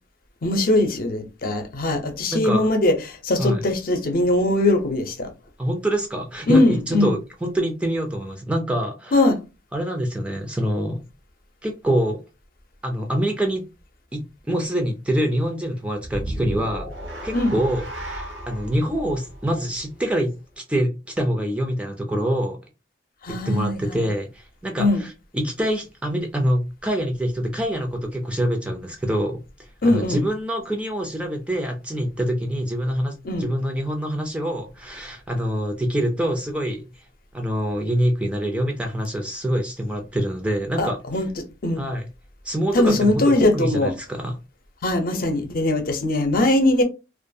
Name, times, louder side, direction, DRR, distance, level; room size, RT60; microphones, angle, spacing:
voice 1, 0.4-5.3 6.5-7.1 9.1-9.4 17.3-17.5 23.2-24.1 24.8-25.0 29.8-30.2 33.2-33.5 40.8-41.8 42.7-43.9 44.8-46.8, left 2 dB, 55° left, 0.6 m, -21 dB
voice 2, 2.3-2.7 3.4-3.6 5.6-9.3 9.7-11.0 11.6-12.2 12.8-13.6 14.1-16.9 17.2-20.3 20.7-22.6 23.4-36.8 37.3-41.0 41.8-42.1 42.4-44.4, equal, 5° right, 0.3 m, -25 dB
sound 1, 16.0-20.4, equal, 85° right, 0.8 m, -34 dB
2.4 x 2.3 x 2.6 m
head